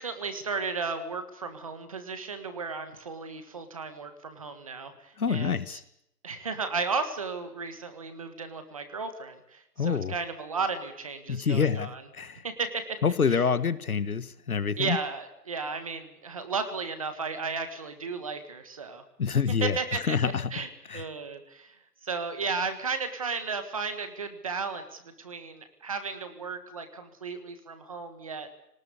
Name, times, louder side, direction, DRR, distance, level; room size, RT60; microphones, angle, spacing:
voice 1, 0.0-5.8 6.2-12.0 12.4-13.0 13.3-13.4 14.8-19.0 19.6-20.2 20.5-20.7 20.9-28.5, right 4 dB, 20° right, 9 dB, 1.6 m, -34 dB
voice 2, 5.2-5.8 9.8-10.1 11.3-12.4 13.0-15.0 19.2-19.8 20.1-20.5 20.9-21.1, left 6 dB, 60° left, 15 dB, 1.5 m, -27 dB
21.5 x 19.5 x 8.3 m, 0.77 s
hypercardioid pair, 175°, 48 cm